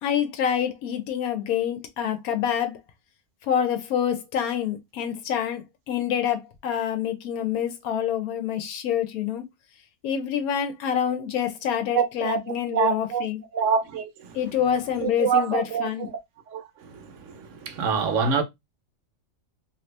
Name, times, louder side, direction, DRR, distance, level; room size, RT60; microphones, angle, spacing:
voice 1, 0.0-2.8 3.4-9.4 10.0-13.4 14.3-16.1, left 9 dB, 85° left, 1.1 m, -27 dB
voice 2, 11.9-13.2 13.5-14.4 15.0-16.1 16.5-18.4, right 6 dB, 65° right, 1.0 m, -26 dB
2.9 x 2.6 x 3.2 m
omnidirectional pair, 1.5 m